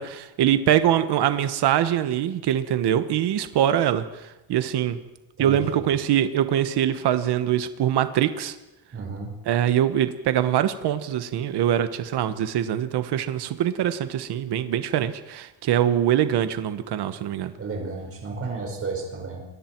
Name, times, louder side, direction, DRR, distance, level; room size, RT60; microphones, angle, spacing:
voice 1, 0.0-4.0 4.5-5.0 5.4-8.6 9.4-17.5, right 10 dB, 55° right, 10 dB, 1.3 m, -23 dB
voice 2, 5.4-5.8 8.9-9.3 17.6-19.5, right 3 dB, 30° right, 1 dB, 5.2 m, -32 dB
28.5 x 22.5 x 4.6 m, 0.98 s
cardioid pair, 180°, 47 cm